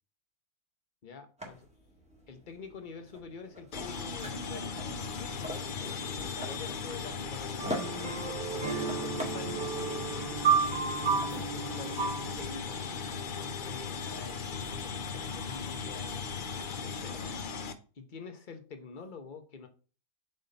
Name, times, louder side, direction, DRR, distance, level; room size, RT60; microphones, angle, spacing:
voice 1, 1.0-1.6 2.3-10.1 11.0-16.3 16.8-17.3 18.0-19.7, left 4 dB, 35° left, 0.9 m, -46 dB
sound 1, 1.4-17.4, equal, 5° right, 1.7 m, -47 dB
sound 2, 3.7-17.7, left 5 dB, 55° left, 0.5 m, -37 dB
sound 3, 7.6-12.6, right 6 dB, 30° right, 1.5 m, -32 dB
7.0 x 4.2 x 4.0 m
omnidirectional pair, 1.8 m